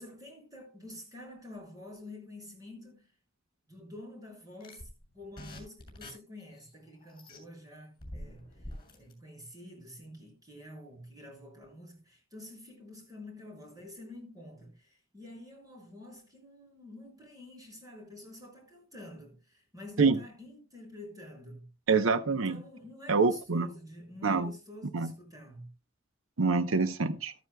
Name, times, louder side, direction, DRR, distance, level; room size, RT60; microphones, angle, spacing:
voice 1, 0.0-3.1 3.7-21.7 22.3-25.7, left 1 dB, 20° right, 6.6 m, -48 dB
sound 1, 4.6-7.4 8.0-9.1, left 1 dB, 25° left, 6.7 m, -46 dB
voice 2, 21.9-22.6 23.1-23.7 24.2-24.5 24.9-25.1 26.4-27.3, right 4 dB, 90° right, 0.8 m, -26 dB
14.0 x 13.5 x 2.2 m
head